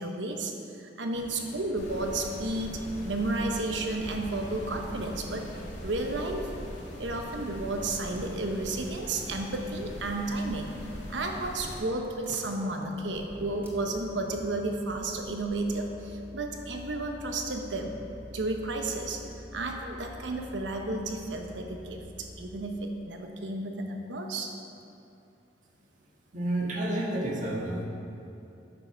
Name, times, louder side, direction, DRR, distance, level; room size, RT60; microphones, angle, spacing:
voice 1, 0.0-5.5 5.8-6.5 7.0-10.8 11.1-18.0 18.3-19.2 19.5-24.5, right 2 dB, 90° right, 3 dB, 1.1 m, -32 dB
sound 1, 1.1-6.3, equal, 45° left, 1.5 m, -48 dB
sound 2, 1.8-11.8, equal, 85° left, 2.1 m, -41 dB
sound 3, 11.2-22.7, equal, 10° right, 1.5 m, -47 dB
voice 2, 26.3-27.9, right 1 dB, 45° right, -3 dB, 1.7 m, -30 dB
9.7 x 6.4 x 5.8 m, 2.7 s
head